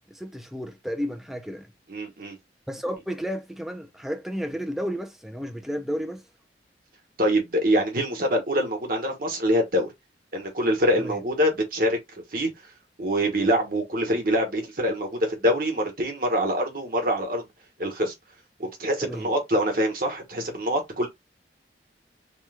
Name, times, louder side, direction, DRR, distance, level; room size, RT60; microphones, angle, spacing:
voice 1, 0.1-1.7 2.7-6.2 11.0-11.2 19.0-19.3, equal, ahead, 0.4 m, -32 dB
voice 2, 1.9-2.4 7.2-9.9 10.3-12.0 12.3-12.5 13.0-17.4 17.8-18.1 18.6-21.1, equal, 50° right, 1.1 m, -25 dB
3.0 x 2.2 x 3.2 m
head